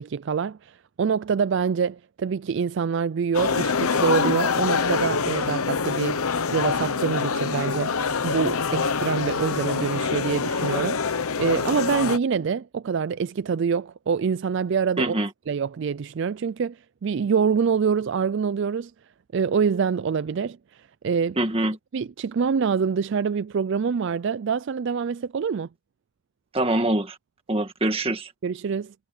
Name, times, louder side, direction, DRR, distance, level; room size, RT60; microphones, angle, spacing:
voice 1, 0.0-6.2 6.5-8.0 8.2-15.2 15.5-18.9 19.3-21.4 21.9-25.7 28.4-28.9, right 6 dB, 55° right, 0.4 m, -25 dB
sound 1, 3.3-12.2, left 5 dB, 90° left, 1.0 m, -25 dB
voice 2, 15.0-15.3 21.4-21.8 26.5-27.2 27.5-28.3, right 1 dB, 25° right, 1.8 m, -24 dB
head